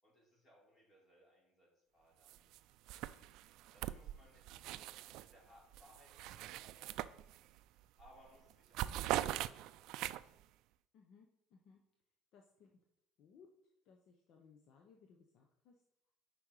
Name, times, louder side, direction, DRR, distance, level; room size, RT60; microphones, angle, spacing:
voice 1, 0.0-2.4 3.1-3.4 3.7-7.5 8.0-9.5, equal, 25° left, -4 dB, 3.4 m, -66 dB
sound 1, 2.3-2.6 2.9-5.3 5.7-7.6 8.0-8.2 8.5-10.4, right 14 dB, 65° right, 0.3 m, -41 dB
voice 2, 10.9-11.8 12.3-12.7 13.2-13.5 13.9-15.7, left 6 dB, 50° left, 2 dB, 0.9 m, -64 dB
8.6 x 5.3 x 4.8 m, 0.80 s
cardioid pair, 160°, 0 cm